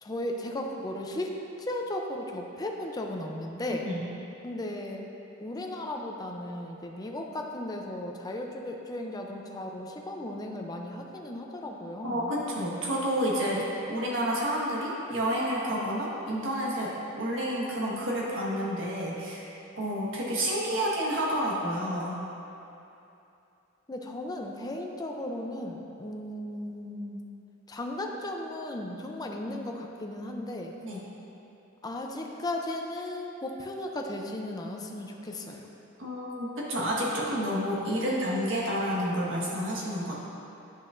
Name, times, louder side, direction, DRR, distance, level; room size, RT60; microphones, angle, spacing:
voice 1, 0.0-1.3 1.7-3.9 4.4-5.1 5.4-12.3 23.9-27.2 27.7-30.7 31.8-35.7, left 1 dB, 20° left, 1 dB, 0.5 m, -36 dB
voice 2, 12.0-19.4 19.8-22.2 30.8-31.0 36.0-40.1, equal, 70° right, -5 dB, 1.4 m, -30 dB
10.0 x 6.1 x 2.5 m, 2.9 s
head